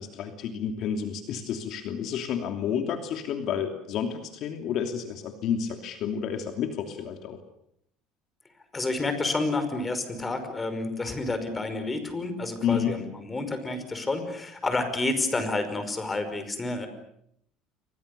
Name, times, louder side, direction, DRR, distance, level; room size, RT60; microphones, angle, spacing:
voice 1, 0.0-7.4 12.6-13.0, left 7 dB, 55° left, 5 dB, 2.9 m, -30 dB
voice 2, 8.7-16.9, left 2 dB, 15° left, 9 dB, 5.5 m, -29 dB
29.5 x 24.5 x 6.9 m, 0.73 s
cardioid pair, 125°, 0 cm